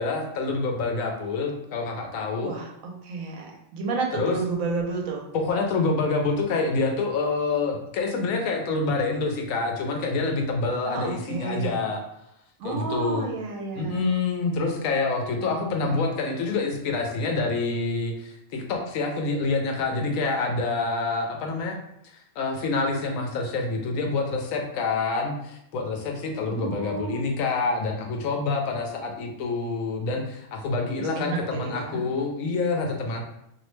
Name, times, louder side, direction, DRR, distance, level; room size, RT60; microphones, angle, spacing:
voice 1, 0.0-2.5 4.1-4.4 5.3-12.0 12.6-13.3 13.7-21.8 22.1-33.3, left 3 dB, 80° left, 2 dB, 1.0 m, -27 dB
voice 2, 2.4-5.2 10.9-11.8 12.6-14.0 15.4-16.0 26.5-27.2 31.0-32.0, right 4 dB, 90° right, 0 dB, 1.1 m, -32 dB
2.7 x 2.0 x 3.0 m, 0.78 s
omnidirectional pair, 1.4 m